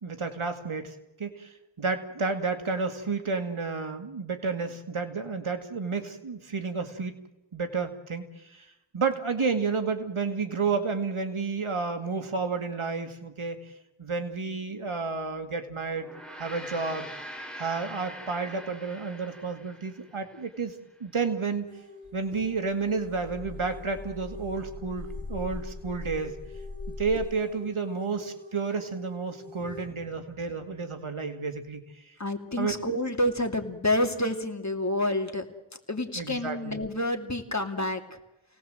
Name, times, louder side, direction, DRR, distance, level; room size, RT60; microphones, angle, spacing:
voice 1, 0.0-7.1 7.5-8.7 8.9-13.6 14.0-16.1 16.4-17.1 17.6-20.7 21.0-21.7 22.1-26.4 26.9-32.1 32.6-32.7 36.2-36.8, right 4 dB, 90° right, 6 dB, 2.2 m, -31 dB
Gong, 15.9-20.5, equal, ahead, 4.0 m, -43 dB
sound 1, 21.7-29.9, left 4 dB, 65° right, 7.5 m, -47 dB
sound 2, 22.0-27.3, left 3 dB, 60° left, 1.6 m, -41 dB
voice 2, 32.2-35.5 35.9-38.2, left 1 dB, 35° left, 5 dB, 2.7 m, -28 dB
28.0 x 18.5 x 7.9 m, 0.94 s
wide cardioid pair, 45°, 48 cm